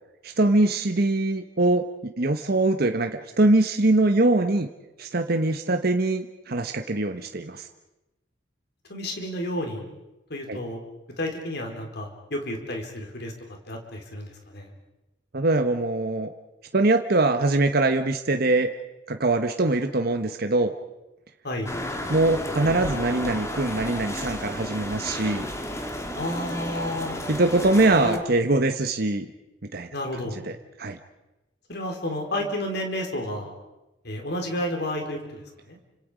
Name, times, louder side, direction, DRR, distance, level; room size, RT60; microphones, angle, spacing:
voice 1, 0.2-4.7 5.0-7.7 10.5-10.6 15.3-16.3 16.7-18.7 19.1-20.7 22.1-25.5 27.3-29.3 29.7-29.9 30.3-30.5 30.8-31.0, right 2 dB, 55° right, 6 dB, 1.1 m, -23 dB
voice 2, 8.9-9.8 10.3-10.8 11.2-13.3 13.7-14.7 21.4-21.7 26.1-27.2 28.0-28.2 29.9-30.4 31.7-33.5 34.0-35.4 35.7-35.8, left 1 dB, 65° left, 3 dB, 4.4 m, -31 dB
sound 1, 21.6-28.2, left 1 dB, 15° left, 2.4 m, -32 dB
30.0 x 26.0 x 5.1 m, 0.98 s
head